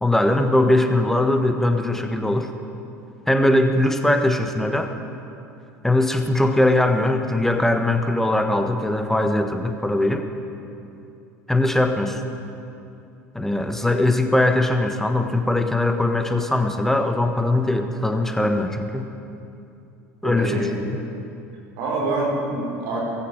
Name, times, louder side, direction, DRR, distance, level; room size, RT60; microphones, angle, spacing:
voice 1, 0.0-2.5 3.3-4.9 5.8-10.2 11.5-12.2 13.3-19.1 20.2-20.7, left 1 dB, 5° left, 6 dB, 1.4 m, -20 dB
voice 2, 20.2-20.7 21.8-23.0, right 2 dB, 60° right, -2 dB, 4.6 m, -25 dB
15.5 x 15.5 x 5.0 m, 2.7 s
hypercardioid pair, 75°, 9 cm